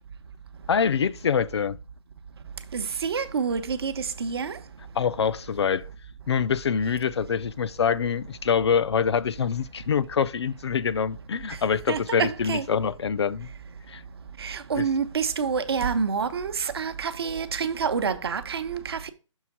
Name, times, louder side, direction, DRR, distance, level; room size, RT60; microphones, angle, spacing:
voice 1, 0.7-1.8 4.9-5.9 6.3-13.5 13.9-14.0 14.8-14.9, left 7 dB, 55° left, 0.5 m, -25 dB
voice 2, 2.7-4.6 11.9-12.7 14.4-19.1, right 6 dB, 50° right, 0.8 m, -28 dB
6.3 x 3.5 x 5.8 m
hypercardioid pair, 165°, 16 cm